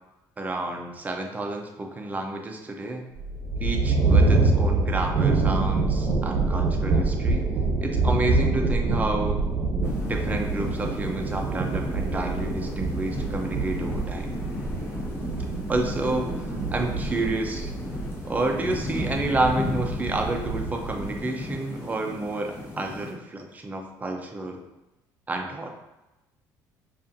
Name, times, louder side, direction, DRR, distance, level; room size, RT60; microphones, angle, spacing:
voice 1, 0.4-3.1 3.6-7.5 7.8-9.4 10.1-14.3 15.4-17.7 18.2-24.6 25.3-25.7, right 2 dB, 20° right, 2 dB, 0.6 m, -30 dB
sound 1, 3.2-21.2, right 3 dB, 70° right, 0.7 m, -26 dB
sound 2, 9.8-23.1, left 2 dB, 30° left, 0.9 m, -35 dB
4.9 x 2.5 x 2.6 m, 1.0 s
cardioid pair, 95°, 8 cm